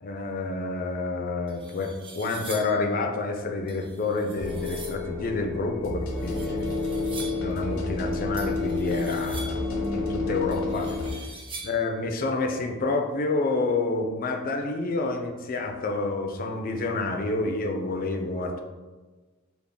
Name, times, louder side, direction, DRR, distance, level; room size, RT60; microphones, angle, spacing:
voice 1, 0.0-6.8 7.4-9.6 9.9-11.0 11.6-18.6, left 3 dB, 45° left, 4 dB, 0.4 m, -28 dB
sound 1, 1.0-1.1 1.5-2.9 3.7-5.1 6.1-7.5 8.4-9.7 10.5-11.9, right 3 dB, 25° right, 0.5 m, -43 dB
sound 2, 4.4-11.1, left 3 dB, 85° left, 0.6 m, -30 dB
3.4 x 2.0 x 3.7 m, 1.3 s
head